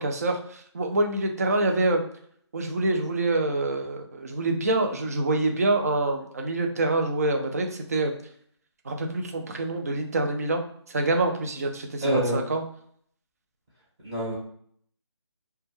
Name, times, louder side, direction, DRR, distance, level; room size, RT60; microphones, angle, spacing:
voice 1, 0.0-2.1 2.5-8.1 8.9-10.6 10.9-12.6, right 2 dB, 35° right, 3 dB, 0.4 m, -26 dB
voice 2, 12.0-12.5 14.0-14.3, right 1 dB, 15° right, -9 dB, 0.7 m, -25 dB
2.2 x 2.1 x 3.0 m, 0.63 s
figure-of-eight pair, 160°, 15 cm